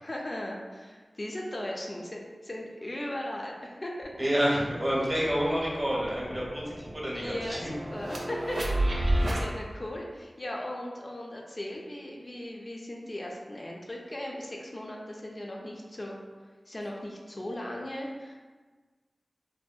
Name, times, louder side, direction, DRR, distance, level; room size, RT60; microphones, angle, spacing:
voice 1, 0.0-4.3 5.0-5.3 7.1-18.4, left 1 dB, 45° left, -2 dB, 0.3 m, -38 dB
sound 1, 4.0-4.1 4.5-9.4, right 1 dB, 80° right, 0.4 m, -32 dB
voice 2, 4.2-7.7, equal, 30° right, -5 dB, 0.7 m, -28 dB
2.6 x 2.1 x 2.3 m, 1.4 s
wide cardioid pair, 50°, 0 cm